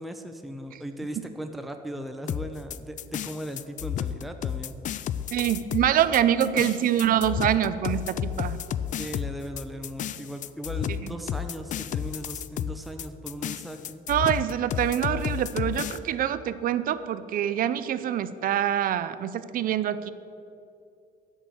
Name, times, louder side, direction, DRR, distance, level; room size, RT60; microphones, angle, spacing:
voice 1, 0.0-4.8 9.0-14.0, equal, ahead, 6 dB, 0.6 m, -38 dB
sound 1, 2.3-16.0, left 9 dB, 50° left, 0.4 m, -32 dB
voice 2, 5.3-8.6 11.0-11.2 14.1-20.1, right 10 dB, 55° right, 14 dB, 0.6 m, -25 dB
10.0 x 6.4 x 8.0 m, 2.6 s
cardioid pair, 110°, 17 cm